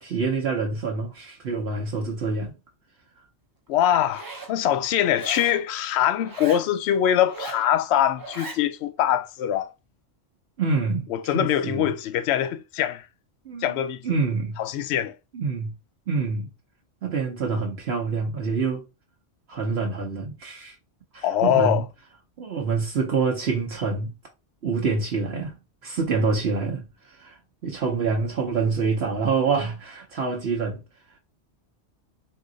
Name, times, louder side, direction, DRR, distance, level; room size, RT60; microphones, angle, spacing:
voice 1, 0.0-2.5 10.6-11.9 13.5-13.7 14.0-14.6 15.3-15.7 16.1-16.5 17.0-18.8 19.5-20.7 21.1-21.8 22.4-24.1 24.6-25.5 25.8-27.4 27.6-30.8, right 4 dB, 60° right, 1.0 m, -26 dB
voice 2, 3.7-9.7 11.1-13.0 13.6-14.0 14.6-15.1 21.2-21.8, left 10 dB, 70° left, 0.8 m, -23 dB
Zipper (clothing), 4.0-4.5 5.1-5.6 6.2-6.7 7.2-7.7 8.2-8.6, right 3 dB, 20° right, 0.6 m, -38 dB
3.7 x 2.8 x 3.8 m
omnidirectional pair, 1.2 m